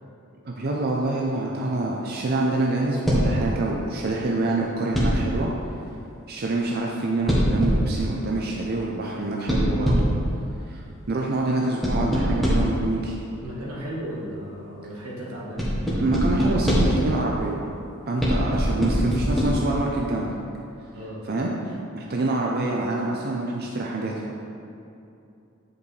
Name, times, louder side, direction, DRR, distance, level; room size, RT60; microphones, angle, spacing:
voice 1, 0.4-5.5 6.3-10.1 10.7-13.2 15.9-17.6 18.1-20.3 21.3-24.4, right 2 dB, 45° right, -2 dB, 0.5 m, -26 dB
sound 1, 3.1-3.4 4.9-5.3 7.3-8.0 9.5-10.2 11.8-12.8 15.6-17.1 18.2-19.4, equal, ahead, 1.2 m, -22 dB
voice 2, 13.4-15.7 20.9-21.2, right 1 dB, 85° right, -5 dB, 1.6 m, -35 dB
9.2 x 5.2 x 3.2 m, 2.7 s
head